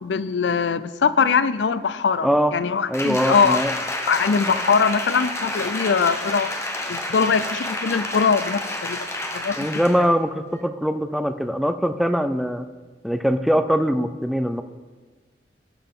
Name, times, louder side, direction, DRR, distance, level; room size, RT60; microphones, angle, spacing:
voice 1, 0.0-3.6 4.1-6.5 6.9-9.1 9.3-9.6, left 5 dB, 85° left, 15 dB, 0.5 m, -21 dB
voice 2, 2.2-2.5 2.9-3.7 4.5-4.6 9.6-12.7 13.0-14.6, equal, ahead, 8 dB, 0.4 m, -22 dB
Applause, 2.9-10.1 10.5-10.6, left 1 dB, 15° left, 0.9 m, -29 dB
18.0 x 6.9 x 3.8 m, 1.4 s
head